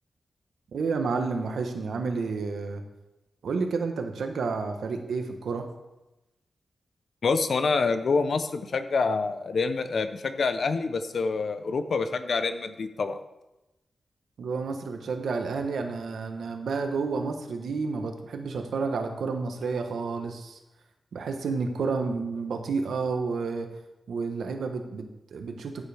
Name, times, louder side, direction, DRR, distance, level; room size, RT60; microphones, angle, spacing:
voice 1, 0.7-2.8 3.4-5.7 14.4-20.6 21.1-23.7 24.1-25.9, right 4 dB, 90° right, 6 dB, 1.1 m, -30 dB
voice 2, 7.2-13.2, left 4 dB, 65° left, 10 dB, 0.7 m, -26 dB
14.0 x 7.5 x 3.5 m, 0.98 s
wide cardioid pair, 105°, 0 cm